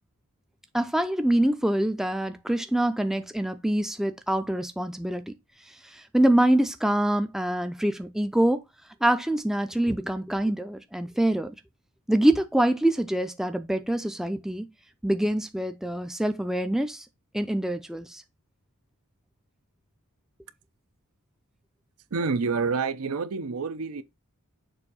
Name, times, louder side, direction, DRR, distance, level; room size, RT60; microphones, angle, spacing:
voice 1, 0.7-5.3 5.7-8.6 9.0-11.6 12.1-14.7 15.0-17.1 17.3-18.2, right 1 dB, ahead, 0.4 m, -25 dB
voice 2, 22.1-24.0, right 4 dB, 70° right, 0.6 m, -28 dB
6.9 x 2.6 x 5.4 m
head